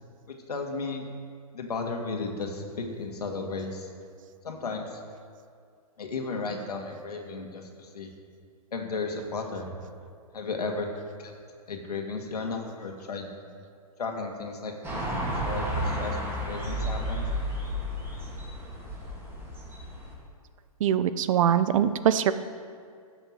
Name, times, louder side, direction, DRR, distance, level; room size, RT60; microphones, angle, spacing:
voice 1, 0.3-1.0 1.5-3.9 4.4-5.0 6.0-8.1 8.7-9.8 10.3-10.9 11.2-11.3 11.7-13.3 14.0-15.0 15.4-17.3, left 3 dB, 85° left, 2 dB, 2.3 m, -34 dB
sound 1, 14.8-20.1, equal, 10° right, 3.1 m, -32 dB
voice 2, 20.8-22.4, right 9 dB, 60° right, 13 dB, 0.7 m, -23 dB
14.0 x 6.6 x 7.8 m, 2.2 s
hypercardioid pair, 130°, 19 cm